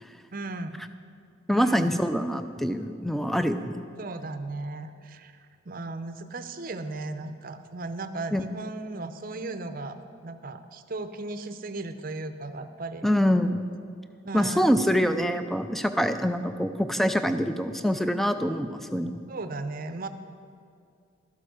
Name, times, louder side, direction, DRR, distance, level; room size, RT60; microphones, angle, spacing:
voice 1, 0.3-0.9 1.5-2.0 4.0-10.0 10.2-13.1 14.2-14.8 19.3-20.1, right 2 dB, 45° right, 10 dB, 0.6 m, -36 dB
voice 2, 1.5-3.8 8.3-8.4 13.0-13.6 14.3-19.2, equal, ahead, 9 dB, 0.4 m, -25 dB
13.0 x 8.0 x 6.3 m, 2.4 s
head